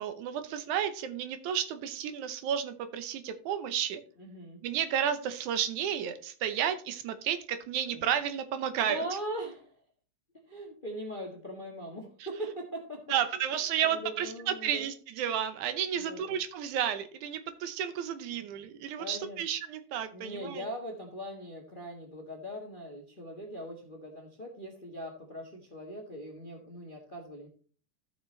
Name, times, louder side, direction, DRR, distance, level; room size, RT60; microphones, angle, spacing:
voice 1, 0.0-4.0 4.6-9.0 13.1-20.7, right 9 dB, 85° right, 10 dB, 2.3 m, -32 dB
voice 2, 4.2-4.6 7.9-8.0 8.9-9.7 10.5-13.0 13.7-14.9 15.9-16.4 18.4-18.5 19.0-19.5 20.1-27.5, equal, 30° left, 0 dB, 1.0 m, -41 dB
14.5 x 5.8 x 3.2 m, 0.42 s
omnidirectional pair, 3.3 m